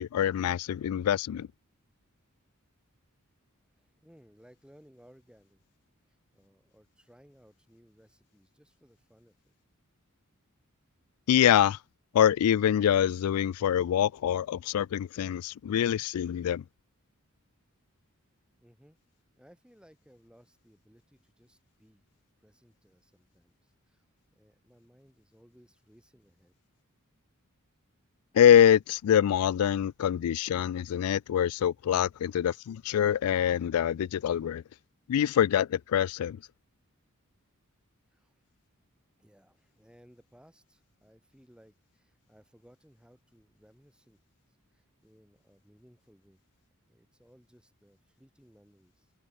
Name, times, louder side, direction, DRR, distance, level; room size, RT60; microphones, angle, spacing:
voice 1, 0.0-1.5 11.3-11.8 12.1-16.6 28.3-34.6 35.1-36.4, left 9 dB, 90° left, 0.3 m, -25 dB
voice 2, 3.7-5.6 6.0-9.3 18.6-19.0 19.4-22.1 22.4-24.0 24.3-26.5 38.1-38.3 39.2-44.2 44.7-46.4 46.9-49.1, equal, 5° right, 2.6 m, -61 dB
head